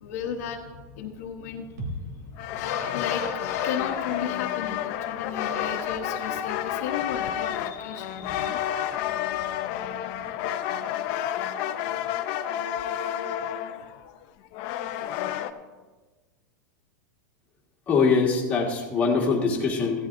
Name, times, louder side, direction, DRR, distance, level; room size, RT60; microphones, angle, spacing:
voice 1, 0.0-2.1 2.5-10.0, left 7 dB, 55° left, 2 dB, 1.0 m, -34 dB
sound 1, 1.8-5.7 6.0-6.1, equal, 75° right, 2.3 m, -42 dB
sound 2, 2.4-15.5, left 11 dB, 35° left, 0.6 m, -30 dB
voice 2, 17.9-20.1, left 5 dB, 15° left, -3 dB, 1.6 m, -23 dB
16.0 x 12.0 x 2.6 m, 1.3 s
supercardioid pair, 170°, 10 cm